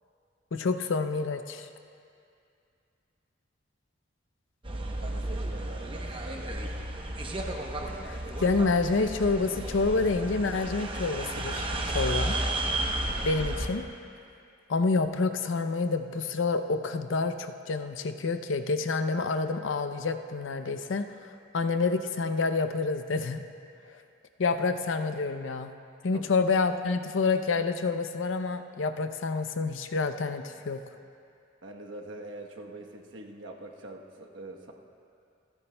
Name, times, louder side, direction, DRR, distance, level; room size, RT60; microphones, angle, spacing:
voice 1, 0.5-1.7 8.0-12.4 13.2-13.8 14.7-21.1 21.5-23.4 24.4-25.7 26.0-30.8, left 4 dB, 90° left, 8 dB, 0.6 m, -28 dB
sound 1, 4.6-13.7, right 1 dB, 25° right, 0.8 m, -33 dB
voice 2, 5.0-6.8 26.1-26.3 31.6-34.7, right 2 dB, 85° right, 1 dB, 1.1 m, -44 dB
28.0 x 9.7 x 2.2 m, 2.4 s
head